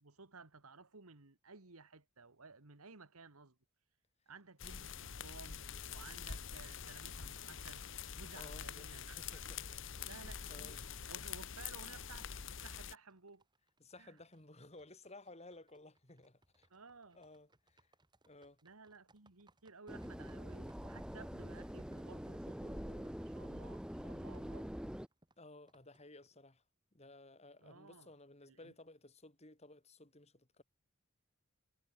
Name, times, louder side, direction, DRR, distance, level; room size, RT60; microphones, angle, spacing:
voice 1, 0.0-3.6 4.3-5.6 5.9-7.9 8.1-9.4 10.0-10.7 11.1-13.4 14.0-14.2 16.7-17.2 18.6-24.7 27.6-28.1 28.5-28.7, right 4 dB, 90° right, 2.0 m, -57 dB
sound 1, 4.6-13.0, left 7 dB, 60° left, 1.2 m, -46 dB
voice 2, 8.3-9.8 10.1-10.9 13.8-16.7 17.1-17.9 18.3-18.6 25.4-26.6 26.9-30.6, left 2 dB, 30° left, 3.1 m, -57 dB
sound 2, 12.9-26.6, right 2 dB, 20° right, 5.8 m, -73 dB
sound 3, 19.9-25.1, equal, 5° right, 0.7 m, -45 dB
head